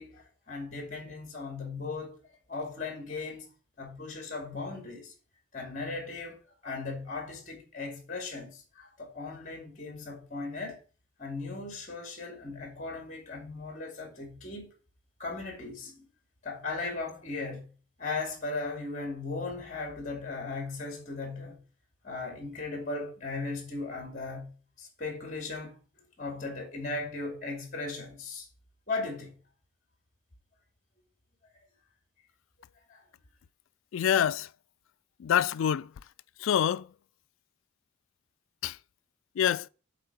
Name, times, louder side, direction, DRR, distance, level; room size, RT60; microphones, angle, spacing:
voice 1, 0.0-2.2 2.5-3.5 3.8-5.1 5.5-10.8 11.2-14.7 15.2-16.1 16.4-17.7 18.0-21.6 22.0-24.5 24.8-25.8 26.2-28.5 28.9-29.3 32.9-33.0, left 3 dB, 40° left, 2.4 m, -37 dB
voice 2, 33.9-34.5 35.2-35.9 36.4-36.9 38.6-38.8 39.4-39.7, left 9 dB, 80° left, 0.3 m, -26 dB
8.2 x 3.8 x 6.9 m
head